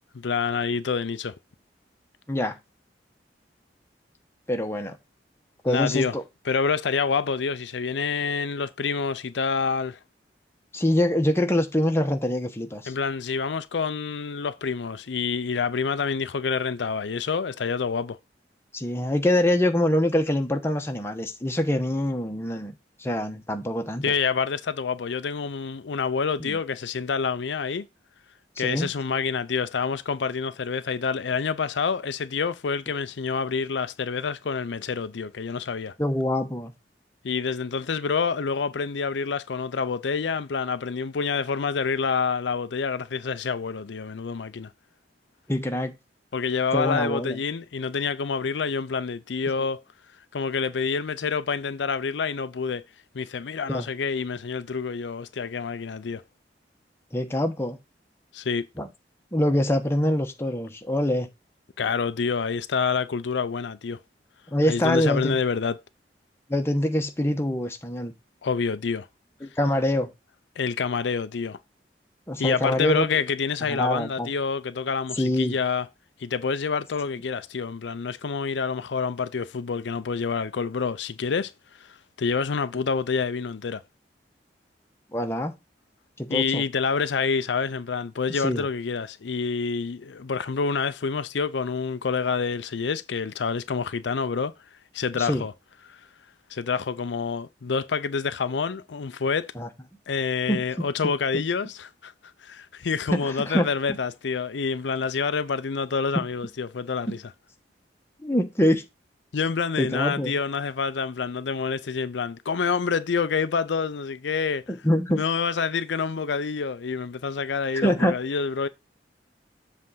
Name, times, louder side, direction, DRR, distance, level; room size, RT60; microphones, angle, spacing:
voice 1, 0.1-1.3 5.7-6.1 6.4-10.0 12.9-18.2 24.0-27.9 28.6-35.9 37.2-44.7 46.3-49.8 50.3-52.8 53.1-56.2 58.3-58.7 61.8-64.0 64.7-65.8 68.4-69.1 70.6-71.6 72.4-75.9 76.2-81.5 81.8-83.8 86.3-94.5 94.9-95.5 95.9-96.0 96.5-99.5 100.1-102.1 102.4-107.2 109.3-114.6 115.2-118.7, left 5 dB, 80° left, 0.5 m, -27 dB
voice 2, 4.5-5.0 5.6-6.2 10.7-12.9 18.7-22.7 23.0-24.1 26.4-26.6 28.6-28.9 36.0-36.7 45.5-45.9 46.7-47.4 53.7-53.9 57.1-57.8 58.8-58.9 59.3-61.3 64.5-65.4 66.5-68.1 69.4-70.1 72.3-73.0 73.7-74.3 75.2-75.6 85.1-85.5 86.2-86.6 88.4-88.7 95.2-95.4 99.6-99.7 100.5-100.6 103.1-103.7 107.1-107.2 108.2-108.8 109.8-110.4 114.8-115.2 117.7-118.2, left 1 dB, 15° left, 1.1 m, -24 dB
7.6 x 3.5 x 5.5 m
head